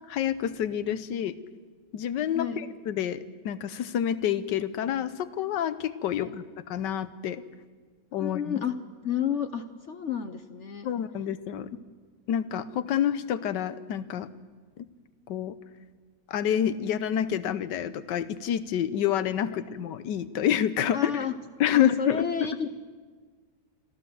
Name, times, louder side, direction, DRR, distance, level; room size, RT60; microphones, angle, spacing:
voice 1, 0.1-1.4 1.9-7.4 8.1-8.6 10.8-11.7 12.3-14.3 14.8-14.9 15.3-15.6 16.3-21.1 21.6-22.7, left 9 dB, 75° left, 14 dB, 1.5 m, -28 dB
voice 2, 2.3-2.7 6.2-6.4 8.2-8.8 9.0-10.9 19.5-19.6 20.9-21.3 21.7-22.7, left 8 dB, 55° left, 10 dB, 0.8 m, -31 dB
26.0 x 14.0 x 7.6 m, 1.5 s
omnidirectional pair, 2.0 m